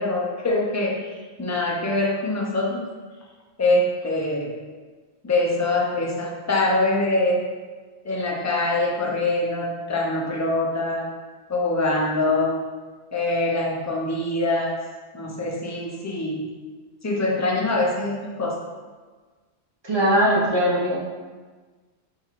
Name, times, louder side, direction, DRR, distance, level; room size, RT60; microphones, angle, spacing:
voice 1, 0.0-2.9 3.6-4.6 5.2-7.4 8.0-11.1 11.5-12.6 13.1-14.7 15.1-16.4 17.0-18.6, left 2 dB, 25° left, -2 dB, 0.4 m, -24 dB
voice 2, 19.8-21.0, equal, 30° right, -5 dB, 0.5 m, -20 dB
5.4 x 3.2 x 2.4 m, 1.4 s
omnidirectional pair, 1.1 m